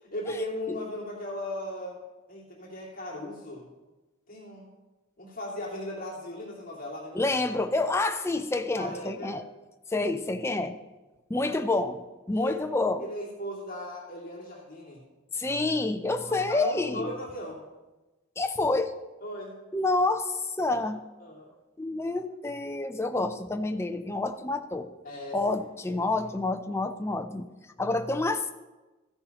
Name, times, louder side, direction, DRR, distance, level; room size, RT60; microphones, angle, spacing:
voice 1, 0.1-2.0 2.3-3.7 4.3-4.7 5.2-7.4 8.7-9.4 11.4-11.6 12.4-12.7 13.0-15.0 16.2-17.6 19.2-19.6 20.7-20.9 21.2-21.5 25.0-25.6 25.9-26.3, left 1 dB, 40° left, -4 dB, 2.4 m, -37 dB
voice 2, 7.1-9.4 9.9-10.8 11.3-12.0 12.3-13.1 15.3-17.1 18.4-19.0 19.7-21.0 21.8-24.9 25.3-27.5 27.8-28.5, left 2 dB, 10° left, 7 dB, 0.4 m, -28 dB
14.0 x 9.7 x 3.0 m, 1.1 s
head